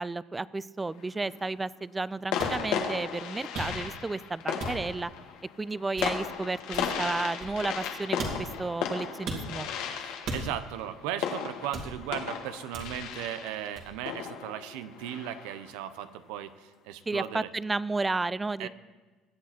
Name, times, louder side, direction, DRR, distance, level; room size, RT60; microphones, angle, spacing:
voice 1, 0.0-5.1 5.6-9.7 17.1-18.7, right 3 dB, 15° right, 20 dB, 0.4 m, -32 dB
sound 1, 0.8-1.4 2.3-15.7, left 7 dB, 75° left, 1.8 m, -35 dB
sound 2, 2.4-2.6 3.5-4.0 4.6-5.0 6.0-6.3 6.7-7.8 8.2-8.6 9.3-9.5 10.2-10.8 11.7-12.2 12.7-13.1 13.8-14.0, right 2 dB, 60° right, 3.4 m, -38 dB
voice 2, 9.9-17.5 18.6-18.7, right 11 dB, 80° right, 11 dB, 1.0 m, -37 dB
21.5 x 8.3 x 4.4 m, 1.3 s
supercardioid pair, 90°, 0 cm